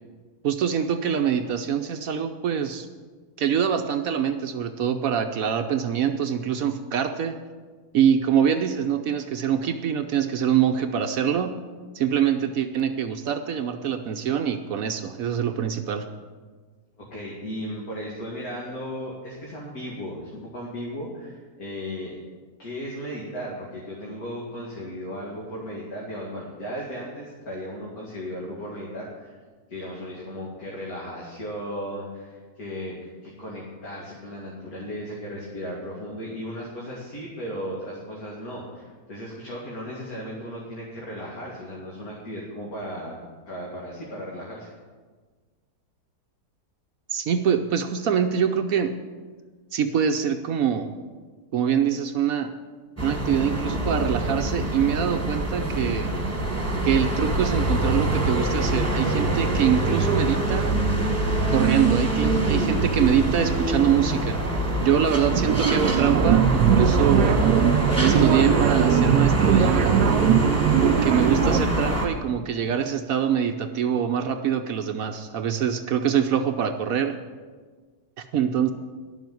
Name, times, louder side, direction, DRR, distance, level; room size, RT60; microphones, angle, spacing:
voice 1, 0.4-2.9 3.4-7.4 7.9-11.6 11.9-16.0 47.1-48.9 49.7-50.9 51.5-52.5 53.0-56.1 56.8-60.8 61.5-64.4 64.8-67.4 68.0-70.1 70.8-77.2 78.2-78.7, right 8 dB, 65° right, 7 dB, 1.1 m, -24 dB
voice 2, 17.0-22.1 22.6-29.4 29.7-43.2 43.5-44.7 68.9-69.1, equal, 65° left, -5 dB, 2.7 m, -36 dB
sound 1, 53.0-72.1, right 2 dB, 10° right, 1.7 m, -24 dB
sound 2, 65.3-71.6, right 9 dB, 85° right, 1.2 m, -21 dB
11.5 x 7.3 x 9.3 m, 1.5 s
omnidirectional pair, 1.7 m